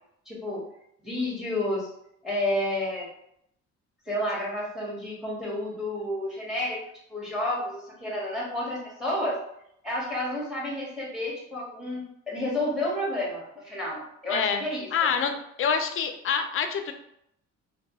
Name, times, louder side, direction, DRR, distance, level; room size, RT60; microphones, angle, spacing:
voice 1, 0.3-0.6 1.0-1.9 2.2-3.1 4.1-6.8 7.1-9.4 9.8-14.9, left 1 dB, ahead, -4 dB, 1.0 m, -30 dB
voice 2, 14.3-14.6 14.9-15.3 15.6-16.9, left 6 dB, 45° left, 7 dB, 0.4 m, -26 dB
2.2 x 2.2 x 2.8 m, 0.74 s
cardioid pair, 90°, 30 cm